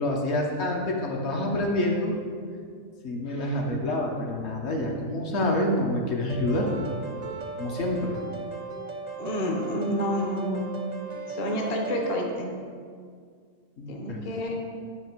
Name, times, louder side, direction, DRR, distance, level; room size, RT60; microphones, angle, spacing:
voice 1, 0.0-2.2 3.0-6.7 7.6-8.2 13.8-14.2, left 1 dB, 60° left, 0 dB, 1.0 m, -27 dB
sound 1, 6.3-12.2, right 4 dB, 50° right, 0.5 m, -37 dB
voice 2, 9.2-10.7 11.3-12.5 13.9-14.5, equal, 40° left, 1 dB, 0.7 m, -29 dB
9.0 x 3.3 x 4.4 m, 2.1 s
omnidirectional pair, 1.4 m